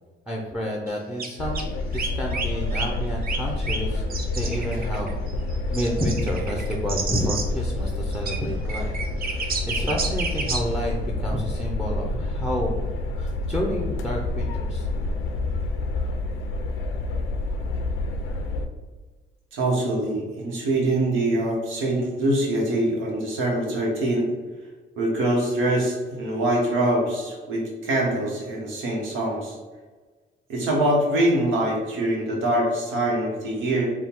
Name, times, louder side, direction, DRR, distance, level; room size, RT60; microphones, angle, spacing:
voice 1, 0.3-4.0 4.3-5.2 5.7-12.8 13.1-14.9, equal, 5° right, 0 dB, 0.6 m, -30 dB
sound 1, 0.9-1.0 1.2-1.3 1.5-1.6 1.9-2.5 2.7-2.9 3.2-3.8 4.1-7.4 8.1-8.4 8.7-10.6, right 4 dB, 50° right, 0.7 m, -30 dB
sound 2, 1.4-18.7, left 2 dB, 85° left, 0.5 m, -28 dB
voice 2, 19.5-24.3 25.0-29.6 30.5-33.9, right 1 dB, 90° right, -2 dB, 1.2 m, -24 dB
3.6 x 2.3 x 4.4 m, 1.3 s
cardioid pair, 90°, 20 cm